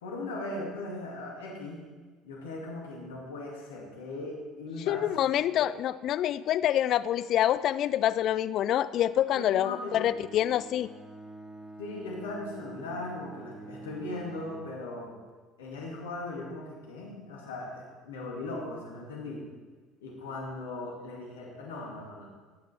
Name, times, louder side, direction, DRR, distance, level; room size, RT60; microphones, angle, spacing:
voice 1, 0.0-1.8 2.2-5.4 9.3-10.0 11.8-15.1 15.6-19.4 20.0-22.3, left 2 dB, 70° left, -2 dB, 2.3 m, -38 dB
voice 2, 4.9-10.9, left 11 dB, 50° left, 15 dB, 0.4 m, -26 dB
Bowed string instrument, 9.9-14.8, right 2 dB, 20° right, 1.4 m, -47 dB
15.0 x 9.6 x 4.4 m, 1.4 s
figure-of-eight pair, 60°, 0 cm